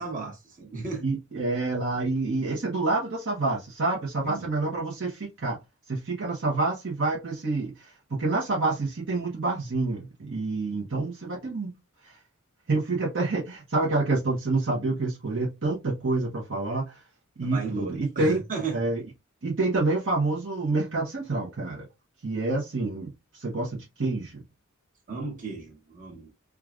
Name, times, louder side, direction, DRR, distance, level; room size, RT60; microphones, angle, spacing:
voice 1, 0.0-1.0 4.2-4.5 17.4-18.8 25.1-26.3, right 4 dB, 40° right, 1.4 m, -35 dB
voice 2, 1.0-5.6 5.9-11.7 12.0-12.1 12.7-17.0 17.4-18.4 18.7-19.0 19.4-21.8 22.2-24.4, right 3 dB, 60° right, 1.0 m, -28 dB
4.7 x 2.4 x 2.4 m
head